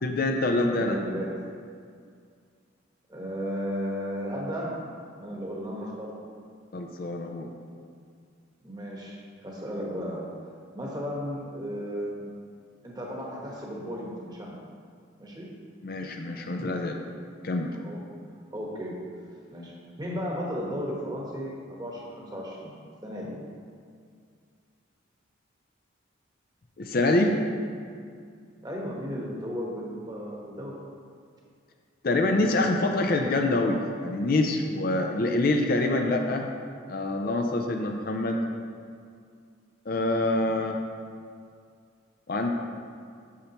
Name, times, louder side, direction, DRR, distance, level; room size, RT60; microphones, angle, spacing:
voice 1, 0.0-1.0 6.7-7.5 15.8-17.0 17.4-17.7 26.8-27.4 32.0-36.5 36.9-38.4 39.9-40.8 42.3-42.5, left 2 dB, 45° left, 3 dB, 0.5 m, -25 dB
voice 2, 0.7-1.4 3.1-4.8 5.2-6.1 8.6-10.3 10.7-12.2 12.8-14.6 15.2-15.5 17.7-18.0 18.5-19.1 19.5-22.7 23.0-23.4 28.6-30.7, equal, 20° right, -3 dB, 1.2 m, -34 dB
8.4 x 7.0 x 3.0 m, 2.2 s
head